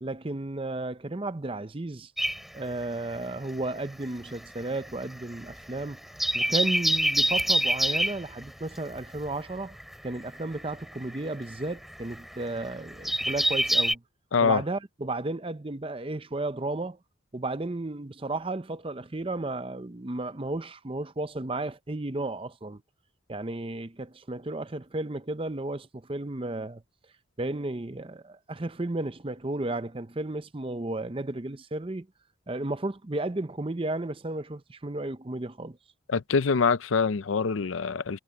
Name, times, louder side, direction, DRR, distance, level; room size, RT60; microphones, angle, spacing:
voice 1, 0.0-2.1 2.5-6.0 6.3-9.8 10.0-14.0 14.4-17.0 17.3-22.8 23.3-26.8 27.4-32.1 32.5-35.8, right 2 dB, 25° right, 0.7 m, -33 dB
sound 1, 2.2-3.6 3.8-13.9, equal, ahead, 2.5 m, -27 dB
voice 2, 14.3-14.6 36.1-38.2, left 5 dB, 75° left, 0.6 m, -24 dB
head